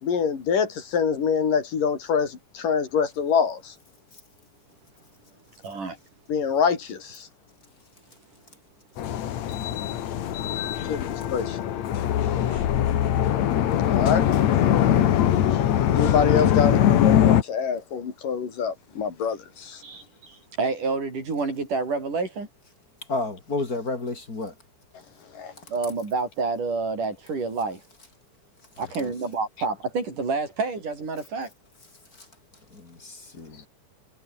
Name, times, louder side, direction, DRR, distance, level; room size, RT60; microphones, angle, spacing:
voice 1, 0.0-3.7 6.3-7.3 10.9-11.6 13.9-14.2 15.9-19.8 25.4-25.5, left 6 dB, 90° left, 5.3 m, -25 dB
voice 2, 5.6-6.0 12.5-12.7 19.8-22.5 25.7-27.8 28.8-31.5, right 4 dB, 75° right, 8.3 m, -28 dB
sound 1, 9.0-17.4, left 11 dB, 60° left, 2.6 m, -22 dB
voice 3, 23.1-24.5 29.0-29.1 32.8-33.6, left 2 dB, 30° left, 3.2 m, -31 dB
omnidirectional pair, 3.7 m